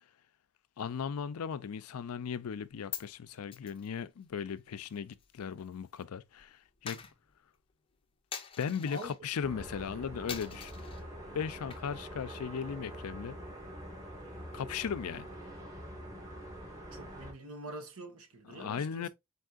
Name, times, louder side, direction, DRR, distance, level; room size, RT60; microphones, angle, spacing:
voice 1, 0.8-7.0 8.6-10.7 11.3-13.4 14.5-15.3 18.5-19.1, left 7 dB, 90° left, 0.4 m, -37 dB
Coin (dropping), 2.6-6.0 6.3-9.2 9.6-9.9 10.3-11.0 11.5-12.1 12.4-12.5 12.9-14.8, left 8 dB, 25° left, 0.5 m, -47 dB
sound 1, 9.4-17.3, equal, 15° right, 1.8 m, -45 dB
voice 2, 16.9-19.1, right 1 dB, 75° right, 1.2 m, -45 dB
4.5 x 4.1 x 2.4 m
head